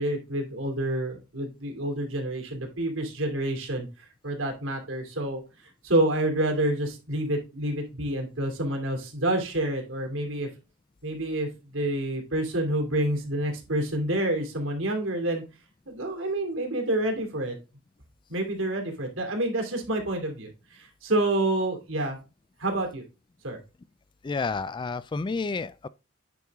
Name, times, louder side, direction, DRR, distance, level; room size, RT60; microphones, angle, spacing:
voice 1, 0.0-3.9 4.2-5.4 5.8-10.5 11.0-15.4 15.9-17.6 18.3-22.2 22.6-23.0 23.4-23.6, right 1 dB, 80° right, 2.7 m, -28 dB
voice 2, 24.2-25.9, left 4 dB, 25° left, 0.3 m, -30 dB
9.2 x 4.6 x 3.5 m
head